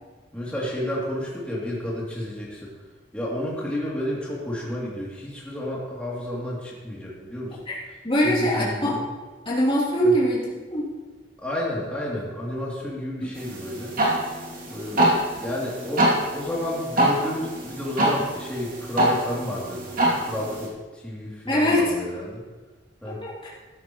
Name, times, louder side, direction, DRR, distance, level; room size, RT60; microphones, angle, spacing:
voice 1, 0.3-2.7 3.1-7.6 8.2-9.0 10.0-10.1 11.4-13.9 14.7-19.9 20.2-22.4 23.0-23.2, left 1 dB, 5° left, -6 dB, 3.0 m, -31 dB
voice 2, 8.0-8.9 9.5-10.9 21.5-21.8 23.2-23.5, equal, 30° left, -7 dB, 3.4 m, -22 dB
sound 1, 13.3-20.7, right 1 dB, 50° right, 2.9 m, -25 dB
14.0 x 12.0 x 3.2 m, 1.3 s
head